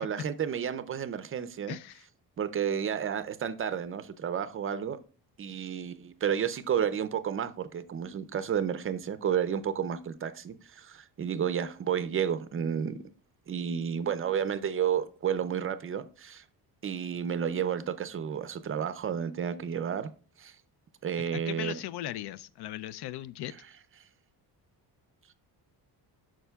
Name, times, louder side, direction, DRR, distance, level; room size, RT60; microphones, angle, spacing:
voice 1, 0.0-1.8 2.4-5.0 5.4-13.0 13.5-16.4 16.8-20.1 20.4-20.5 21.0-21.8, right 8 dB, 35° right, 0.4 m, -31 dB
voice 2, 1.7-2.1 21.3-23.5, left 13 dB, 80° left, 0.5 m, -38 dB
11.0 x 6.1 x 2.3 m
cardioid pair, 155°, 39 cm